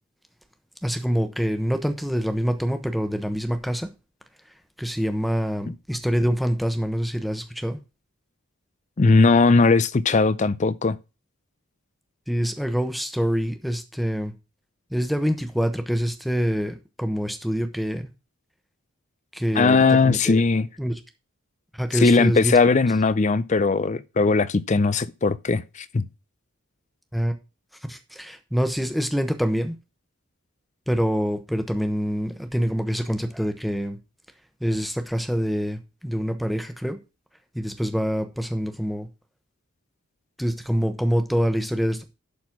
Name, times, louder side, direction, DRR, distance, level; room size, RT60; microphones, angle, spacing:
voice 1, 0.8-3.9 4.8-7.8 12.3-14.3 14.9-18.1 19.3-20.4 20.8-21.0 21.7-22.6 27.1-27.3 27.9-29.8 30.9-34.0 34.6-37.0 37.5-39.1 40.4-42.0, equal, ahead, 1.0 m, -25 dB
voice 2, 9.0-11.0 19.6-20.7 21.9-26.1, left 4 dB, 35° left, 0.4 m, -19 dB
11.5 x 4.3 x 6.0 m
head